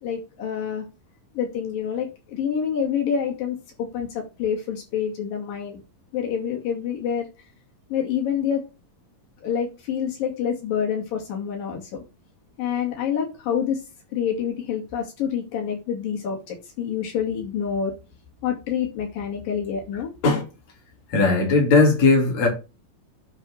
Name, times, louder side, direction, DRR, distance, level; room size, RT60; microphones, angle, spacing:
voice 1, 0.0-0.9 1.3-5.8 6.1-7.3 7.9-8.6 9.4-12.0 12.6-13.8 14.1-17.9 18.4-20.1, left 8 dB, 80° left, 4.2 m, -27 dB
voice 2, 21.1-22.5, left 3 dB, 55° left, 4.0 m, -17 dB
9.6 x 3.9 x 6.7 m
omnidirectional pair, 3.9 m